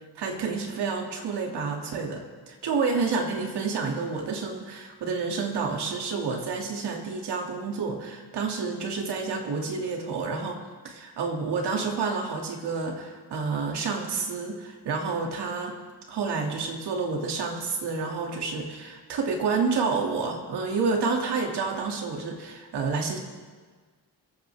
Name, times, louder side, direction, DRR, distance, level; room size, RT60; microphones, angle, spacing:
voice 1, 0.2-15.8 16.1-23.2, right 4 dB, 80° right, 1 dB, 2.4 m, -29 dB
27.5 x 9.2 x 3.5 m, 1.5 s
cardioid pair, 100°, 40 cm